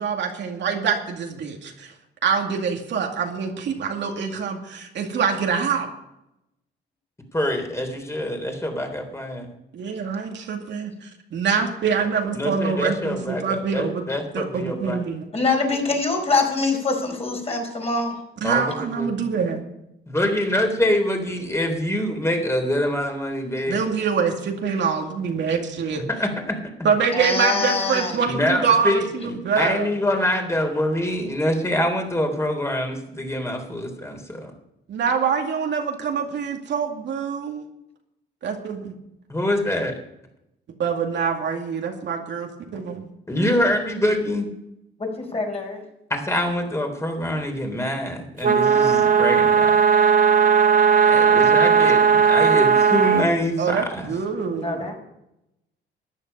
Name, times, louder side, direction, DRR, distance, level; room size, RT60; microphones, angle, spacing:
voice 1, 0.0-1.9 2.2-5.9 9.7-14.0 14.3-15.3 18.4-19.6 23.6-26.0 26.8-29.9 34.9-37.6 38.4-38.9 40.8-43.1 53.6-54.9, right 6 dB, 65° right, 2 dB, 2.3 m, -25 dB
voice 2, 7.3-9.5 12.3-15.0 18.4-19.3 20.1-23.8 26.1-26.6 28.3-34.5 39.3-39.9 43.3-44.5 46.1-49.8 51.1-54.1, left 1 dB, 15° left, 4 dB, 3.6 m, -25 dB
voice 3, 15.3-18.2 27.1-28.2 45.0-45.8 51.2-51.6 54.6-55.0, left 3 dB, 30° left, 2 dB, 4.7 m, -24 dB
sound 1, 48.4-53.3, right 7 dB, 45° right, 1.2 m, -16 dB
14.0 x 10.0 x 5.5 m, 0.85 s
cardioid pair, 90°, 20 cm